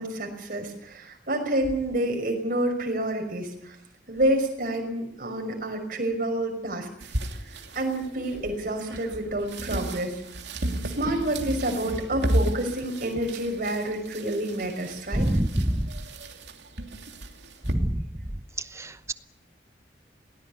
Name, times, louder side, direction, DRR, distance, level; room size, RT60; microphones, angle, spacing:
voice 1, 0.0-3.8 4.1-6.9 7.7-10.2 10.8-15.3, right 1 dB, 55° right, 3 dB, 5.9 m, -28 dB
sound 1, 7.0-17.7, right 1 dB, 75° right, 2.9 m, -33 dB
voice 2, 15.1-15.9 17.7-18.0 18.8-19.1, right 1 dB, 15° right, 13 dB, 0.9 m, -25 dB
19.5 x 19.0 x 9.6 m, 0.74 s
head